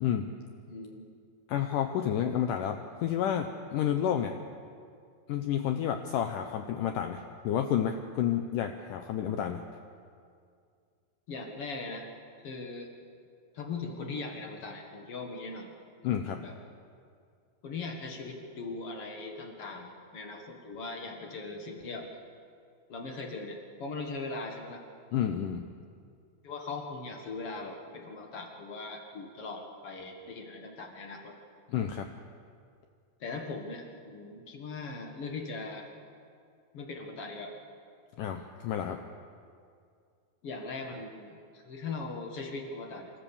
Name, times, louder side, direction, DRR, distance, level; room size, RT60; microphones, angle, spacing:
voice 1, 0.0-0.3 1.5-4.4 5.3-9.7 16.0-16.4 25.1-25.7 31.7-32.1 38.2-39.0, left 9 dB, 90° left, 6 dB, 1.8 m, -30 dB
voice 2, 0.7-1.1 11.3-12.1 12.4-12.9 13.5-15.7 16.4-16.5 17.6-22.1 22.9-24.8 26.4-31.4 33.2-35.9 36.7-37.6 40.4-43.1, left 3 dB, 55° left, 3 dB, 1.6 m, -40 dB
27.0 x 14.0 x 6.9 m, 2.3 s
omnidirectional pair, 4.7 m